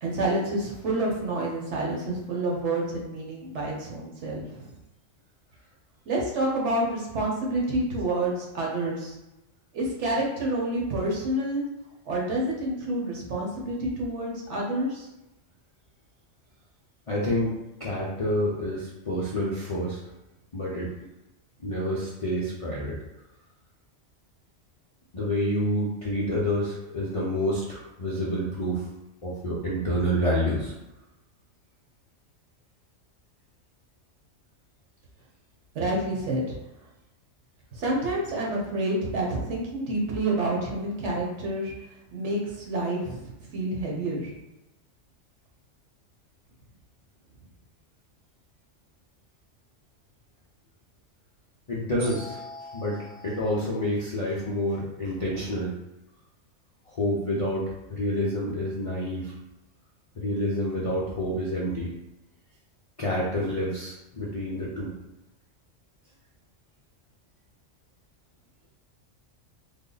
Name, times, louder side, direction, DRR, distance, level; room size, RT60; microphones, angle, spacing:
voice 1, 0.0-4.7 6.1-9.2 9.7-11.7 12.0-15.1 35.7-36.6 37.7-41.7 42.1-44.3, right 1 dB, 65° right, -2 dB, 1.1 m, -28 dB
voice 2, 17.1-17.5 17.8-20.0 20.5-20.9 21.6-23.0 25.1-28.9 29.2-30.7 51.7-55.7 56.9-57.6 57.9-59.3 60.2-61.9 63.0-64.9, equal, 50° left, -6 dB, 0.4 m, -28 dB
3.4 x 2.0 x 3.8 m, 0.96 s
omnidirectional pair, 1.3 m